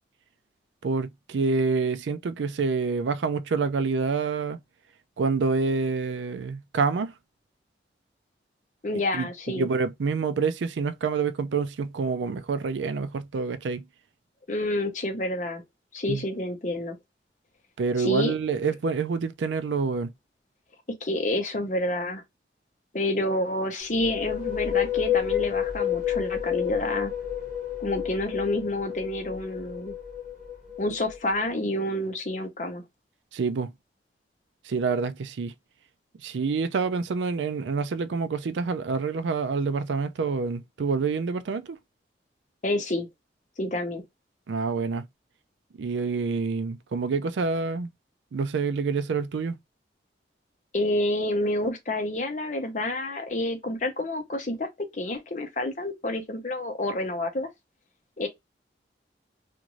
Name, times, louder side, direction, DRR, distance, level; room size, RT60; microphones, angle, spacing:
voice 1, 0.8-4.6 5.2-7.1 9.1-13.9 16.1-16.2 17.8-20.1 33.3-33.7 34.7-35.5 36.2-41.8 44.5-45.0 45.8-47.9 48.3-49.6, right 4 dB, 90° right, 0.4 m, -27 dB
voice 2, 8.8-9.7 14.5-15.6 15.9-17.0 18.0-18.3 21.0-22.2 22.9-27.1 27.8-29.9 30.8-32.8 42.6-43.1 43.6-44.0 50.7-57.5 58.2-58.3, left 1 dB, 45° left, 0.8 m, -28 dB
sound 1, 23.8-31.4, left 10 dB, 45° right, 1.1 m, -30 dB
2.5 x 2.5 x 3.0 m
head